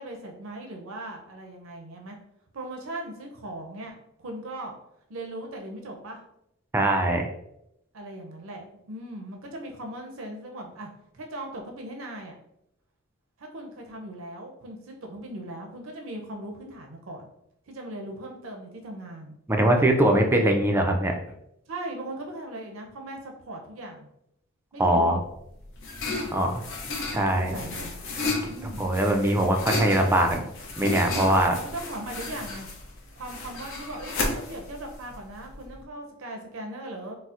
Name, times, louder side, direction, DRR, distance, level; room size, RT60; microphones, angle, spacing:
voice 1, 0.0-2.2 2.5-4.7 5.1-6.2 7.9-10.9 11.1-12.3 13.4-17.3 17.7-19.4 21.7-24.1 24.7-25.2 26.1-26.3 27.4-27.9 28.5-28.9 31.4-32.7 33.2-37.2, right 1 dB, 70° right, 2 dB, 0.5 m, -39 dB
voice 2, 6.7-7.3 19.5-21.1 24.8-25.2 26.3-26.6 27.1-27.6 28.8-30.5 30.8-31.6, right 1 dB, 10° right, 3 dB, 0.3 m, -22 dB
sound 1, 25.2-35.8, left 3 dB, 65° left, 0.6 m, -34 dB
4.1 x 2.0 x 2.4 m, 0.78 s
head